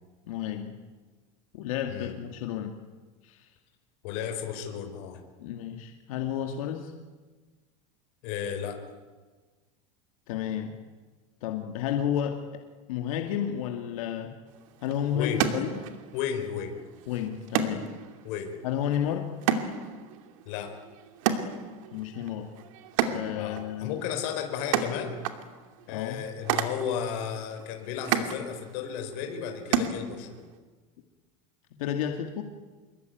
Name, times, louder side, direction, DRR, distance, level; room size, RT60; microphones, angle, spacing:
voice 1, 0.3-0.7 1.5-2.8 3.2-3.5 5.4-6.9 10.3-10.7 11.4-12.4 12.9-14.4 14.8-15.7 17.1-17.9 18.6-19.3 21.9-22.5 23.0-24.0 25.9-26.2 31.8-32.4, left 9 dB, 90° left, 4 dB, 2.4 m, -31 dB
voice 2, 4.0-5.2 8.2-8.8 15.1-15.5 16.1-16.8 18.2-18.5 20.4-20.7 23.3-25.2 25.9-30.5, left 8 dB, 55° left, 5 dB, 4.8 m, -33 dB
sound 1, 14.5-30.6, right 8 dB, 75° right, 2.7 m, -33 dB
26.5 x 23.0 x 9.5 m, 1.3 s
cardioid pair, 175°, 17 cm